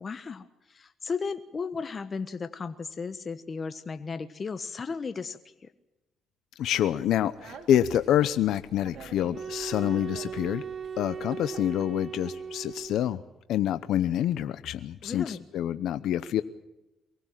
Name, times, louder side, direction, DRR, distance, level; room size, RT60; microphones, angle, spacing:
voice 1, 0.0-5.4 15.0-15.4, left 5 dB, 40° left, 10 dB, 1.3 m, -35 dB
voice 2, 6.6-10.6 11.0-13.2 13.5-16.4, left 11 dB, 80° left, 12 dB, 0.8 m, -27 dB
Speech, 7.0-13.0, right 6 dB, 65° right, 4.0 m, -50 dB
sound 1, 9.3-13.2, right 6 dB, 40° right, 1.5 m, -38 dB
24.0 x 19.0 x 7.5 m, 0.97 s
cardioid pair, 90°, 0 cm